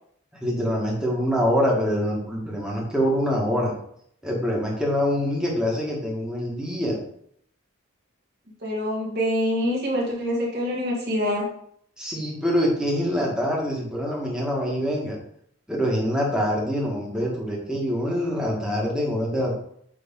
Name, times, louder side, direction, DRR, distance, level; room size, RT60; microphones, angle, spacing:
voice 1, 0.3-3.7 4.2-7.0 12.0-15.2 15.7-19.5, equal, 5° right, -3 dB, 1.6 m, -25 dB
voice 2, 8.6-11.5, equal, 50° right, -4 dB, 2.2 m, -25 dB
8.5 x 3.5 x 3.7 m, 0.68 s
head